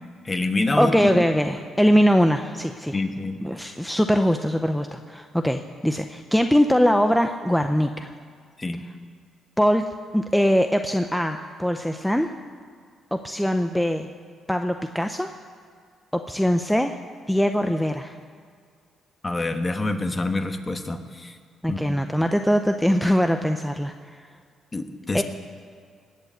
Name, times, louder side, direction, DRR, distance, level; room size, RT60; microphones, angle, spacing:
voice 1, 0.2-1.2 2.9-3.4 8.6-8.8 19.2-21.4 21.7-22.0 24.7-25.2, left 2 dB, 25° left, 7 dB, 1.3 m, -26 dB
voice 2, 0.8-3.0 3.4-8.1 9.6-12.3 13.1-14.1 14.5-15.3 16.1-17.0 17.3-18.2 21.6-24.2 25.1-25.2, equal, 5° left, 6 dB, 0.7 m, -22 dB
19.5 x 7.4 x 8.2 m, 2.1 s
cardioid pair, 90°, 0 cm